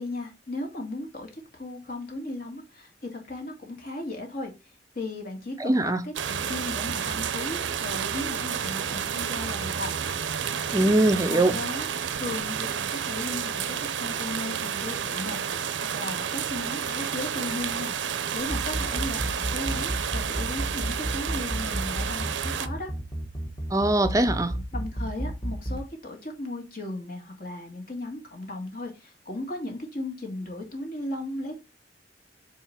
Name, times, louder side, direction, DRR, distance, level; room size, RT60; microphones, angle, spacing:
voice 1, 0.0-4.5 5.0-10.0 11.3-11.9 12.1-18.0 18.3-22.9 24.7-31.6, left 2 dB, 55° left, 1.9 m, -36 dB
voice 2, 5.6-6.0 10.7-11.5 23.7-24.5, right 1 dB, 20° right, 0.6 m, -22 dB
sound 1, 6.1-22.7, right 8 dB, 80° right, 0.5 m, -30 dB
sound 2, 18.5-25.8, right 1 dB, 25° left, 1.3 m, -31 dB
4.6 x 3.8 x 5.7 m
head